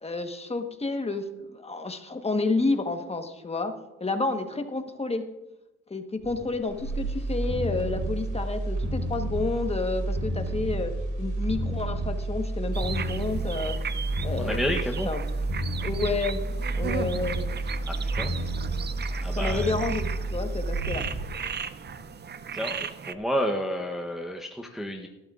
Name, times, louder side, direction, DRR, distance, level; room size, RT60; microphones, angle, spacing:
voice 1, 0.0-3.7 4.0-5.2 5.9-13.8 14.2-14.8 15.1-15.2 15.8-16.4 16.7-17.5 19.4-21.0, left 3 dB, 20° left, 6 dB, 1.3 m, -30 dB
sound 1, 6.2-22.3 22.7-22.8, right 2 dB, 85° right, 3.9 m, -30 dB
sound 2, 12.7-23.1, right 7 dB, 35° right, 0.6 m, -37 dB
voice 2, 14.4-15.1 17.8-18.4 19.2-19.8 22.5-25.1, equal, ahead, 1 dB, 0.9 m, -31 dB
19.0 x 12.0 x 2.5 m, 1.0 s
cardioid pair, 90°, 30 cm